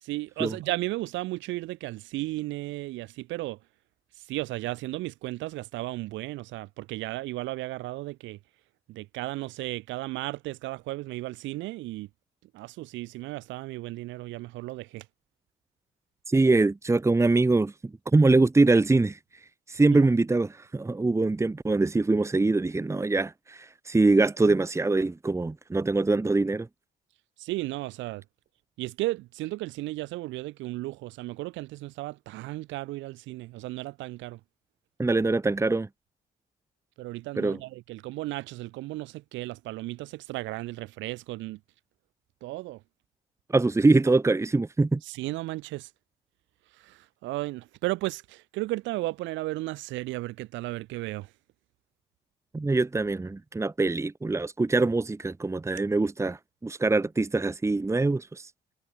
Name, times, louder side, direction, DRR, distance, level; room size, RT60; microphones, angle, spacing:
voice 1, 0.0-3.6 4.2-8.4 8.9-12.1 12.5-15.1 27.4-28.2 28.8-34.4 37.0-41.6 42.4-42.8 45.0-45.9 46.8-51.3, right 18 dB, 90° right, 3.8 m, -34 dB
voice 2, 16.3-17.7 18.1-19.2 19.7-26.7 35.0-35.9 37.4-37.6 43.5-45.0 52.5-58.5, right 3 dB, 15° right, 1.4 m, -23 dB
cardioid pair, 100°, 19 cm